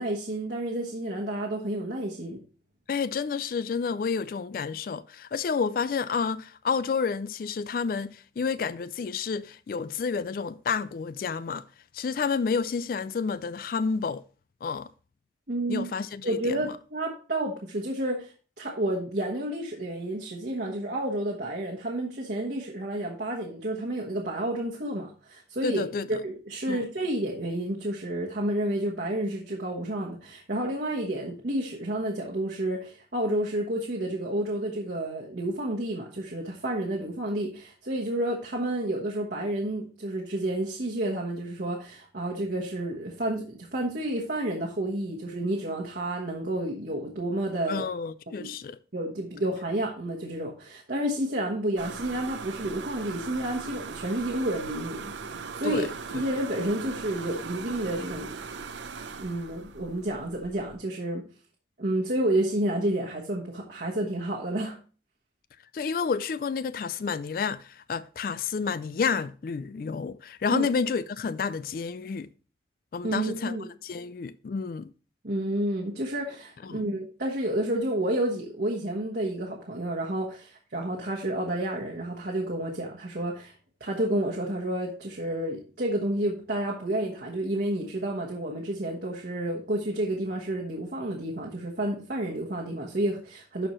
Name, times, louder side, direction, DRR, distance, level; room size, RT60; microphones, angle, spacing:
voice 1, 0.0-2.4 15.5-15.9 16.2-18.3 18.6-47.9 48.4-48.5 48.9-55.9 56.1-58.4 59.2-61.3 61.8-64.8 70.5-70.7 73.0-73.7 75.2-83.5 83.8-93.7, right 1 dB, 60° right, 1.2 m, -30 dB
voice 2, 2.9-11.6 11.9-14.2 14.6-14.9 15.7-16.8 25.6-26.2 26.7-26.9 47.7-48.8 55.6-55.9 56.1-56.2 65.7-72.3 72.9-73.6 73.8-74.9 76.6-76.8, left 5 dB, 50° left, 0.3 m, -30 dB
sound 1, 51.8-60.7, right 5 dB, 85° right, 0.6 m, -39 dB
12.0 x 4.6 x 3.1 m
head